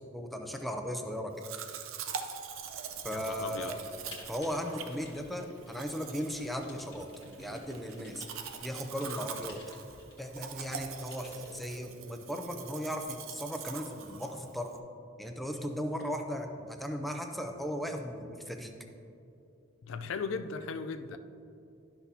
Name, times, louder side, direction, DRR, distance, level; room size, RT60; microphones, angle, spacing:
voice 1, 0.1-1.3 3.0-3.8 4.3-7.1 7.4-8.3 8.6-9.6 10.2-14.8 15.2-18.7, equal, ahead, 4 dB, 0.5 m, -37 dB
Domestic sounds home sounds, 1.4-14.8, right 7 dB, 75° right, 0.6 m, -44 dB
voice 2, 3.1-3.7 19.8-21.2, left 5 dB, 70° left, 9 dB, 0.4 m, -37 dB
Typing, 3.3-11.8, left 2 dB, 25° left, 1.5 m, -55 dB
11.5 x 6.0 x 2.7 m, 2.6 s
head